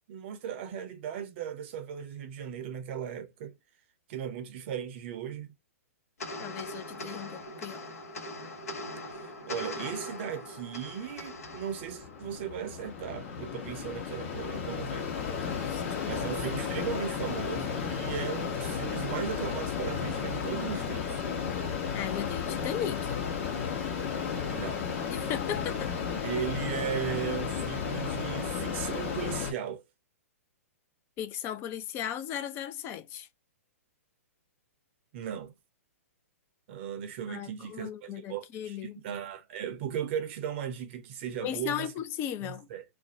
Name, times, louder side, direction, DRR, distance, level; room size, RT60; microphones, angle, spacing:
voice 1, 0.1-3.5 4.1-5.5 9.1-15.1 16.1-21.2 24.5-24.8 26.2-29.8 35.1-35.5 36.7-41.9 42.4-42.8, right 8 dB, 50° right, 0.6 m, -37 dB
sound 1, 6.2-12.8, left 1 dB, 75° left, 0.9 m, -41 dB
voice 2, 6.4-7.9 15.1-16.3 21.9-23.2 25.1-25.9 31.2-33.3 37.3-39.0 41.4-42.7, left 10 dB, 30° left, 0.4 m, -37 dB
Mechanisms, 11.5-29.5, left 6 dB, 55° left, 1.1 m, -33 dB
2.5 x 2.1 x 2.7 m
hypercardioid pair, 120°, 8 cm